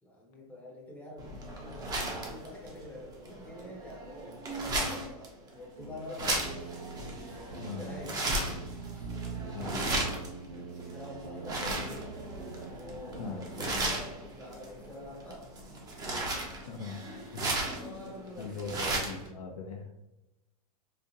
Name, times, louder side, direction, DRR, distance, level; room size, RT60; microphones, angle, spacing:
voice 1, 0.0-6.4 7.1-8.4 8.9-9.1 10.6-11.9 12.5-15.5 17.4-18.6, left 1 dB, 10° left, -2 dB, 0.9 m, -46 dB
sound 1, 1.2-19.3, right 2 dB, 20° right, 0.8 m, -36 dB
sound 2, 5.8-8.0 8.3-12.7 13.1-13.7, right 5 dB, 65° right, 0.9 m, -43 dB
voice 2, 7.6-8.0 9.5-10.0 13.2-13.7 16.7-17.0 17.3-17.6 18.4-19.9, left 4 dB, 70° left, 2 dB, 0.9 m, -40 dB
4.3 x 2.4 x 2.8 m, 0.95 s
hypercardioid pair, 125°, 19 cm